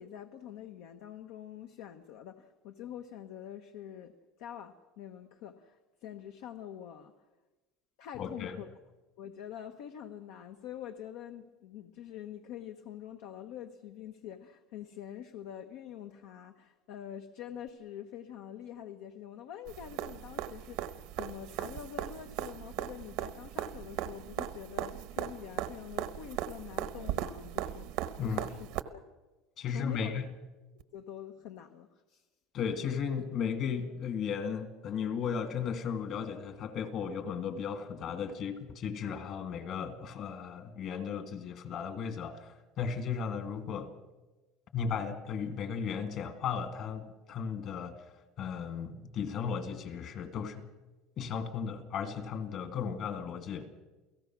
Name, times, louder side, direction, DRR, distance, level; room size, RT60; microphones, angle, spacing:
voice 1, 0.0-7.3 8.0-8.7 9.2-28.6 28.9-29.0 29.7-30.2 30.7-32.3, left 10 dB, 75° left, 1.1 m, -46 dB
voice 2, 8.2-8.6 28.2-28.4 29.6-30.3 32.5-43.9 44.7-50.7 51.2-53.7, left 6 dB, 45° left, 2.2 m, -35 dB
sound 1, 19.7-28.8 30.8-30.9, right 12 dB, 70° right, 1.0 m, -38 dB
29.0 x 17.0 x 6.1 m
cardioid pair, 145°, 0 cm